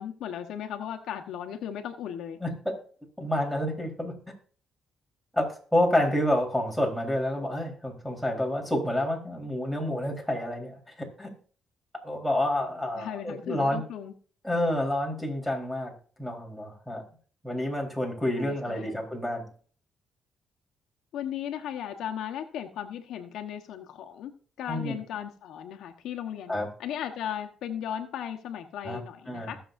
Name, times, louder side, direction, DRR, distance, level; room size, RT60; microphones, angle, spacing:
voice 1, 0.0-2.4 13.0-14.1 18.4-19.0 21.1-24.3 24.6-29.6, left 9 dB, 80° left, 4 dB, 1.1 m, -36 dB
voice 2, 2.4-2.7 3.2-4.1 5.3-11.3 12.0-13.8 14.4-15.9 16.2-17.0 17.4-19.4 24.7-25.0 26.5-26.7 28.8-29.0 29.3-29.5, left 1 dB, ahead, -1 dB, 3.9 m, -29 dB
21.0 x 7.0 x 2.6 m, 0.43 s
cardioid pair, 90°, 0 cm